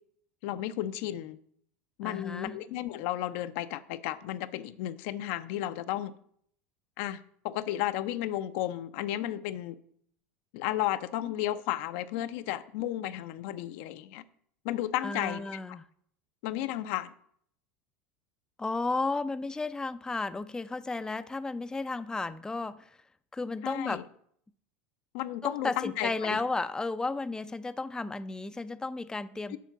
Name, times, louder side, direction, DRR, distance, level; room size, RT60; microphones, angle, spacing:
voice 1, 0.4-1.4 2.0-6.1 7.0-9.8 10.5-14.2 14.6-15.8 16.4-17.1 23.6-24.0 25.1-26.4 29.5-29.6, left 13 dB, 65° left, 0.5 m, -33 dB
voice 2, 2.0-2.6 15.0-15.8 18.6-23.0 23.3-24.0 25.4-29.6, left 3 dB, 10° left, 0.4 m, -33 dB
7.5 x 5.0 x 6.8 m
hypercardioid pair, 85°, 7 cm